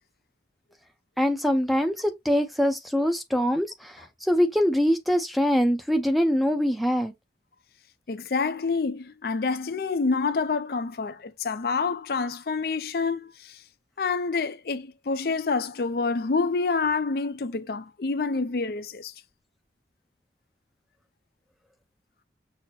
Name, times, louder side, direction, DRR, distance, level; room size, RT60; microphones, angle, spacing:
voice 1, 1.2-7.1, equal, ahead, 0.5 m, -23 dB
voice 2, 8.1-13.6 14.0-19.1, left 4 dB, 55° left, 0.4 m, -27 dB
6.0 x 2.1 x 4.1 m
head